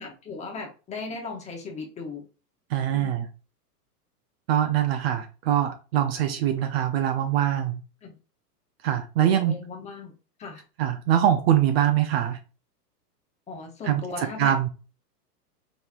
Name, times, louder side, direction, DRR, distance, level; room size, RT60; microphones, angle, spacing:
voice 1, 0.0-2.2 2.9-3.2 8.0-8.1 9.2-10.1 10.4-10.6 13.5-14.5, left 4 dB, 15° left, 0.7 m, -37 dB
voice 2, 2.7-3.3 4.5-7.8 8.8-9.6 10.8-12.4 13.9-14.0 14.4-14.7, right 10 dB, 40° right, 0.5 m, -23 dB
5.2 x 3.1 x 2.4 m
hypercardioid pair, 135°, 48 cm